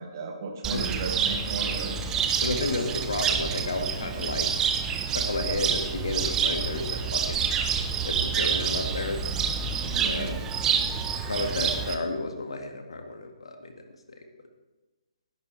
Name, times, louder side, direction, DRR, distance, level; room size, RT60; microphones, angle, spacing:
voice 1, 0.0-2.0 9.9-10.3, right 4 dB, 40° right, 2 dB, 2.5 m, -35 dB
Cricket, 0.6-11.9, right 7 dB, 15° right, 1.0 m, -28 dB
voice 2, 2.4-4.5 5.1-7.4 8.0-9.2 10.0-10.4 11.3-13.7, left 2 dB, 65° left, 4 dB, 2.1 m, -31 dB
19.0 x 11.0 x 3.5 m, 1.2 s
figure-of-eight pair, 135°, 3 cm